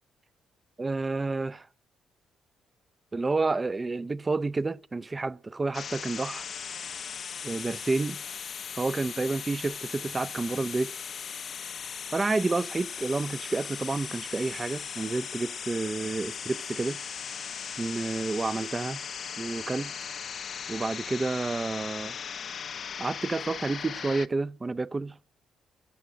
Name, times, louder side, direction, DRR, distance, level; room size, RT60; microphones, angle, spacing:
voice 1, 0.8-1.7 3.1-6.4 7.4-8.2 8.7-10.9 12.1-17.0 17.8-19.0 19.4-19.9 20.7-22.2 23.0-25.2, right 3 dB, 25° right, 0.6 m, -30 dB
sound 1, 5.7-24.3, left 7 dB, 50° left, 0.6 m, -38 dB
14.5 x 7.7 x 10.0 m
cardioid pair, 90°, 0 cm